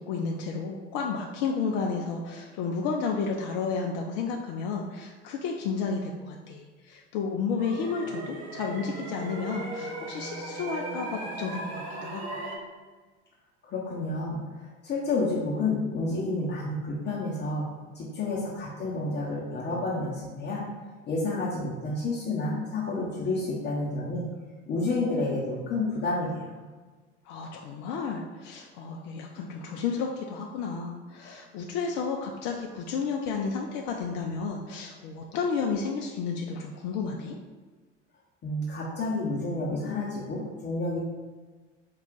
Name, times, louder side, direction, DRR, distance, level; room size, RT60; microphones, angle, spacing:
voice 1, 0.0-12.4 27.2-37.4, left 5 dB, 45° left, 1 dB, 0.5 m, -32 dB
sound 1, 7.6-12.6, right 2 dB, 65° right, 0.9 m, -37 dB
voice 2, 13.6-17.7 17.9-20.6 21.0-24.3 24.7-26.5 38.4-41.0, left 2 dB, 30° left, -6 dB, 0.9 m, -30 dB
4.7 x 2.4 x 3.7 m, 1.4 s
figure-of-eight pair, 70°, 35 cm